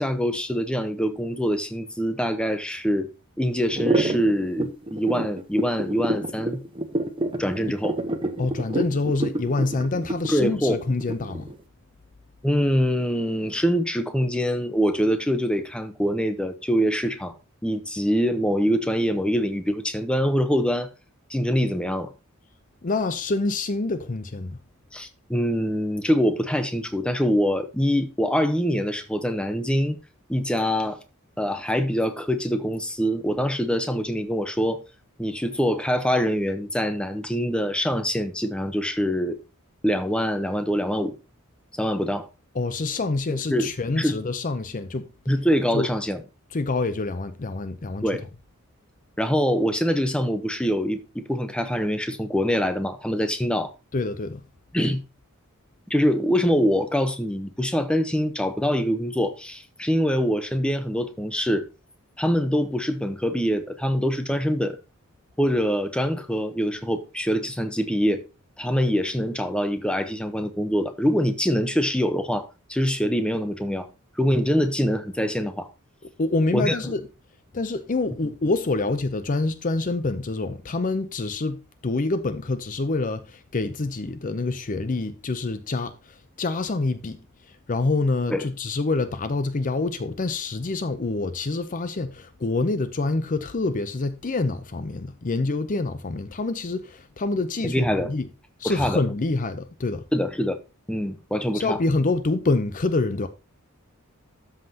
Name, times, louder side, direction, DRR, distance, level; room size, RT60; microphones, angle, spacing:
voice 1, 0.0-3.1 3.4-6.6 7.4-8.0 10.3-10.8 12.4-17.3 17.6-20.9 21.3-22.1 24.9-30.0 30.3-31.0 31.4-34.8 35.2-39.4 39.8-41.1 41.8-42.3 43.3-43.7 44.0-44.1 45.3-46.2 48.0-48.2 49.2-53.7 54.7-55.0 55.9-61.7 62.2-64.8 65.4-68.2 68.6-73.9 74.2-75.7 76.5-76.9 88.3-88.5 97.7-98.1 98.6-99.0 100.1-100.6 100.9-101.8, equal, 5° left, 0.8 m, -24 dB
sound 1, 3.7-11.5, right 1 dB, 25° right, 1.0 m, -27 dB
voice 2, 8.4-11.5 22.8-24.6 42.5-45.1 45.7-45.9 46.5-48.2 53.9-54.4 76.2-77.1 77.5-87.2 87.5-98.3 98.6-100.0 101.5-103.3, left 3 dB, 35° left, 0.6 m, -26 dB
13.0 x 5.8 x 2.8 m
head